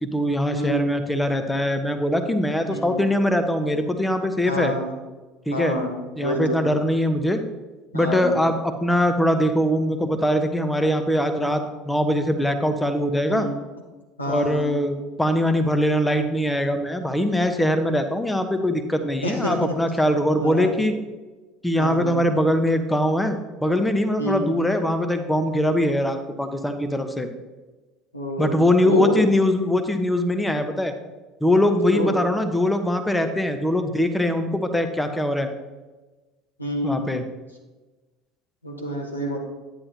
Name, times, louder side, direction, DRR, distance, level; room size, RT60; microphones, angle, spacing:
voice 1, 0.0-4.7 5.5-5.8 6.2-7.4 7.9-13.5 14.3-20.9 21.6-27.3 28.4-30.9 31.4-35.5 36.8-37.2, left 1 dB, 5° left, 7 dB, 0.9 m, -22 dB
voice 2, 0.5-0.9 2.7-3.0 4.4-4.9 5.5-6.6 7.9-8.4 13.3-13.5 14.2-14.7 19.2-19.7 20.4-20.7 21.8-22.2 24.2-24.4 28.1-29.2 31.9-32.1 36.6-37.2 38.6-39.4, equal, 90° left, 0 dB, 1.3 m, -28 dB
9.9 x 9.7 x 2.8 m, 1.2 s
figure-of-eight pair, 65°, 0 cm